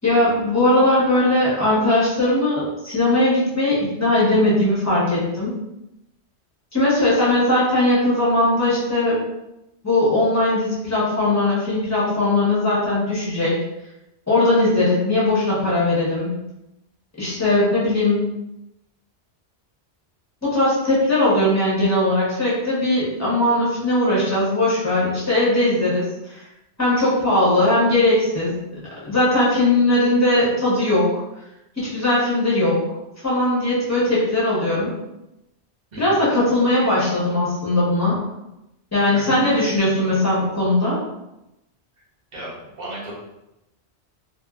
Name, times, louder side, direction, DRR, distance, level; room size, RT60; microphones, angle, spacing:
voice 1, 0.0-5.6 6.7-9.2 9.8-13.6 14.3-16.3 17.2-18.2 20.4-26.4 26.8-28.8 29.1-31.2 31.8-32.8 33.2-34.9 36.0-38.2 38.9-41.0, left 1 dB, 15° left, -8 dB, 1.0 m, -19 dB
voice 2, 39.3-39.6 42.3-42.5 42.8-43.1, right 1 dB, 40° right, -6 dB, 1.0 m, -34 dB
2.7 x 2.6 x 2.4 m, 0.90 s
omnidirectional pair, 1.1 m